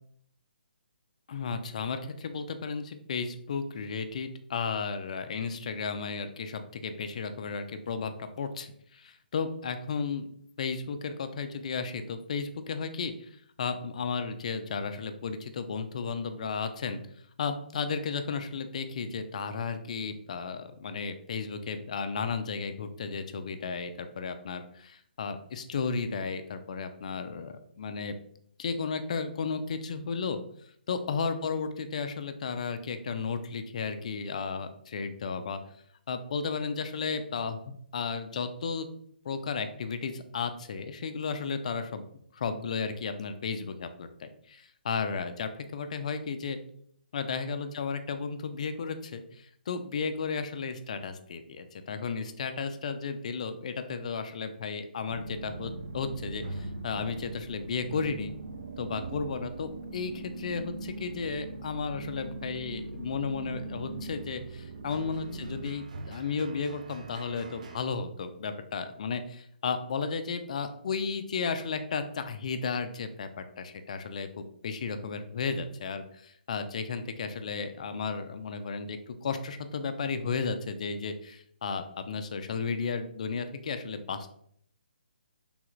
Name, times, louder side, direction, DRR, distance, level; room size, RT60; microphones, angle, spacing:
voice 1, 1.3-10.3 10.6-13.3 13.6-17.0 17.4-28.1 28.6-30.4 30.9-35.6 36.1-38.9 39.3-42.0 42.3-46.6 47.1-58.3 58.8-84.3, left 5 dB, 45° left, 9 dB, 0.3 m, -34 dB
sound 1, 55.1-67.8, right 2 dB, 45° right, 0.4 m, -41 dB
3.3 x 2.4 x 3.0 m, 0.66 s
hypercardioid pair, 165°, 5 cm